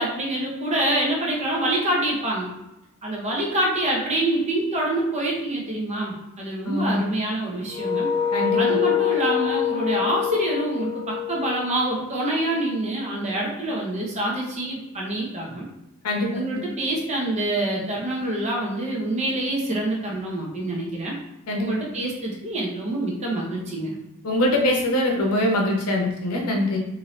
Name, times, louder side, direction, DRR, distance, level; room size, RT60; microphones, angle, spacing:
voice 1, 0.0-2.5 3.0-8.1 8.6-15.7 16.3-21.1 21.6-24.0, right 1 dB, 30° right, -3 dB, 0.7 m, -26 dB
voice 2, 6.7-7.0 8.3-8.8 16.0-16.3 16.5-16.6 21.5-21.7 24.2-26.8, left 1 dB, 80° left, 1 dB, 0.7 m, -23 dB
sound 1, 7.7-12.5, left 9 dB, 15° left, 0.8 m, -25 dB
2.8 x 2.6 x 3.1 m, 0.93 s
head